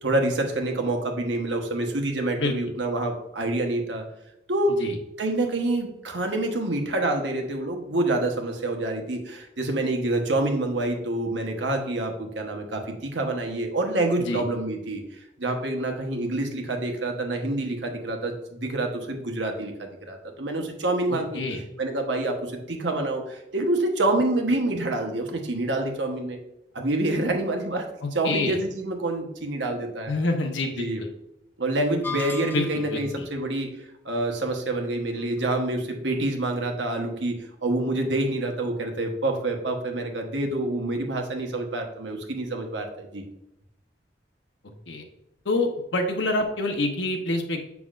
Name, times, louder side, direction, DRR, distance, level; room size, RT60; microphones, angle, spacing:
voice 1, 0.0-4.0 4.5-4.8 5.2-15.0 15.4-21.4 21.8-26.4 26.7-27.8 28.1-30.1 30.8-31.0 31.6-33.7 34.0-37.4 37.6-43.3, right 2 dB, 80° right, 3 dB, 1.2 m, -27 dB
voice 2, 2.4-2.7 4.8-5.0 14.2-14.4 21.1-21.6 28.0-28.6 30.1-30.9 32.5-33.2 44.9-45.0 45.4-47.6, left 2 dB, 80° left, 4 dB, 1.0 m, -27 dB
sound 1, 32.0-33.0, left 5 dB, 10° left, 0.4 m, -35 dB
7.2 x 6.0 x 2.5 m, 0.85 s
head